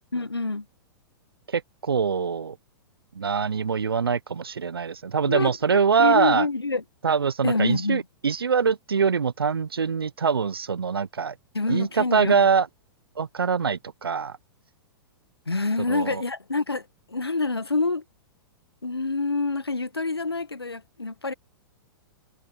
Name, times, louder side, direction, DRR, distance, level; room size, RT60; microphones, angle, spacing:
voice 1, 0.1-0.7 5.3-6.8 7.4-8.0 11.5-12.4 15.5-18.0 18.8-21.3, left 3 dB, 85° left, 1.8 m, -27 dB
voice 2, 1.5-2.6 3.1-6.5 7.0-11.3 11.7-12.7 13.2-14.3 15.9-16.2, right 6 dB, 75° right, 1.1 m, -24 dB
figure-of-eight pair, 105°, 13 cm